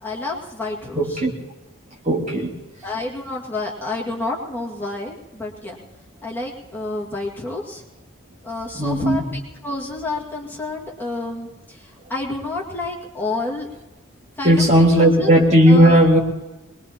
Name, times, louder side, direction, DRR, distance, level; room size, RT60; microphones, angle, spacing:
voice 1, 0.0-1.2 2.8-5.8 6.2-7.8 8.4-9.2 9.6-13.7 14.4-15.3 15.7-16.1, left 2 dB, 10° left, -3 dB, 2.0 m, -29 dB
voice 2, 0.9-1.3 2.0-2.6 8.7-9.2 14.4-16.2, equal, 35° right, 0 dB, 2.0 m, -15 dB
22.0 x 21.0 x 2.9 m, 1.1 s
head